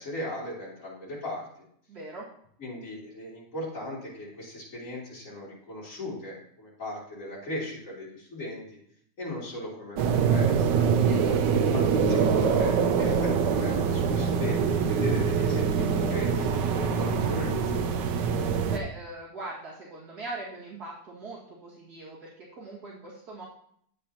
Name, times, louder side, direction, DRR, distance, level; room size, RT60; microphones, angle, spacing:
voice 1, 0.0-1.5 2.6-8.8 9.2-10.9 11.7-18.1, left 1 dB, 45° left, -6 dB, 3.4 m, -38 dB
voice 2, 1.9-2.3 11.1-11.6 18.7-23.4, right 2 dB, 65° right, -6 dB, 2.4 m, -41 dB
sound 1, 10.0-18.8, right 6 dB, 90° right, 1.4 m, -24 dB
9.9 x 8.3 x 2.8 m, 0.66 s
omnidirectional pair, 1.8 m